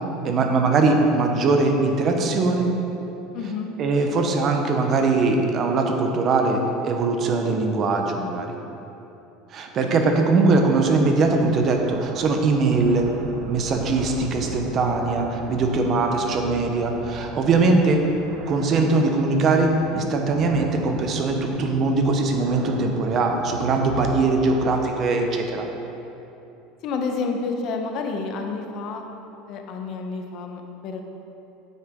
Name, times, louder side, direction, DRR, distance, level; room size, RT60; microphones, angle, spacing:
voice 1, 0.2-2.7 3.8-8.5 9.5-13.1 13.4-18.1 18.5-25.7, right 3 dB, 35° right, 3 dB, 0.9 m, -21 dB
voice 2, 3.3-3.7 26.8-29.0 29.5-31.0, left 4 dB, 50° left, 4 dB, 1.0 m, -29 dB
sound 1, 10.8-24.8, right 5 dB, 55° right, 0.7 m, -38 dB
8.9 x 8.1 x 3.7 m, 2.9 s
supercardioid pair, 145°, 0 cm